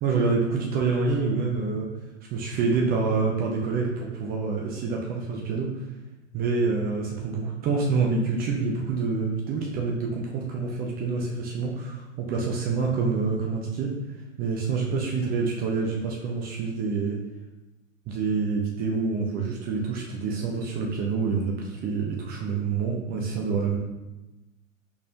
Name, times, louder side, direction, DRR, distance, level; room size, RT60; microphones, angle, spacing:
voice 1, 0.0-1.9 2.3-5.7 6.3-13.9 14.4-17.2 18.1-23.8, right 4 dB, 25° right, -1 dB, 0.8 m, -27 dB
6.4 x 5.5 x 2.7 m, 1.1 s
figure-of-eight pair, 100°, 39 cm